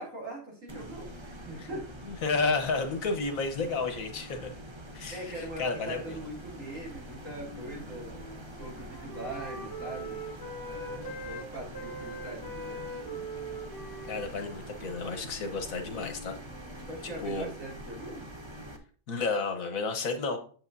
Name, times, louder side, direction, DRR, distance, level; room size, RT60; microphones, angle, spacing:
voice 1, 0.0-1.9 5.1-13.2 16.9-18.3, right 1 dB, 60° right, -4 dB, 3.3 m, -42 dB
sound 1, 0.7-18.8, equal, 25° right, 0.7 m, -45 dB
voice 2, 2.1-4.5 4.9-6.0 14.1-16.3 17.0-17.5 19.1-20.4, left 4 dB, 70° left, 5 dB, 1.5 m, -31 dB
Wind instrument woodwind instrument, 6.5-11.4 11.7-17.0, right 1 dB, 15° left, 1.1 m, -43 dB
8.1 x 7.5 x 2.7 m, 0.42 s
omnidirectional pair, 1.5 m